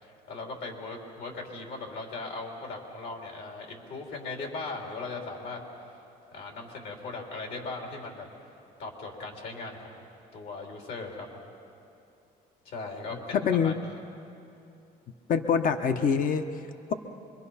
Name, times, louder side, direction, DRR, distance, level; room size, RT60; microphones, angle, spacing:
voice 1, 0.0-5.6 6.3-8.3 8.8-10.1 10.3-11.4 12.7-13.7, left 3 dB, 70° left, 1 dB, 3.7 m, -38 dB
voice 2, 13.3-13.8 15.3-16.9, left 6 dB, 55° left, 7 dB, 1.0 m, -25 dB
25.5 x 23.0 x 5.7 m, 2.7 s
cardioid pair, 110°, 17 cm